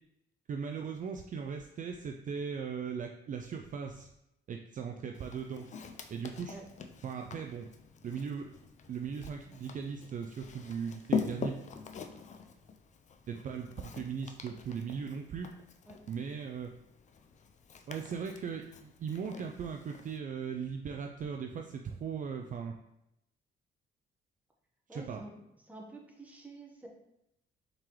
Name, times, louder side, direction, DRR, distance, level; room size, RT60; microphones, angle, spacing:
voice 1, 0.5-4.1 4.5-5.7 6.1-6.6 7.0-7.7 8.0-8.5 8.9-11.6 13.3-15.5 16.0-16.7 17.9-22.7 24.9-25.2, right 6 dB, 40° right, 3 dB, 0.4 m, -38 dB
Walk footsteps, 5.1-20.2, left 5 dB, 35° left, 0.4 m, -43 dB
voice 2, 24.9-26.9, right 2 dB, 5° right, 0 dB, 1.0 m, -49 dB
4.5 x 3.8 x 3.0 m, 0.84 s
cardioid pair, 90°, 20 cm